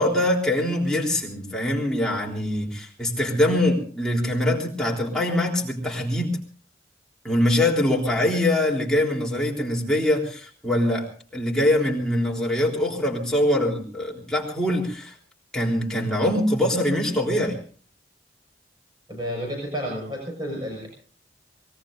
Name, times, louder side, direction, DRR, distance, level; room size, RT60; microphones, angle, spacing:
voice 1, 0.0-6.4 7.2-15.1 15.5-17.6, left 1 dB, 5° left, -2 dB, 3.7 m, -23 dB
voice 2, 19.1-20.9, equal, 25° right, -1 dB, 6.1 m, -31 dB
25.0 x 21.0 x 2.6 m, 0.42 s
head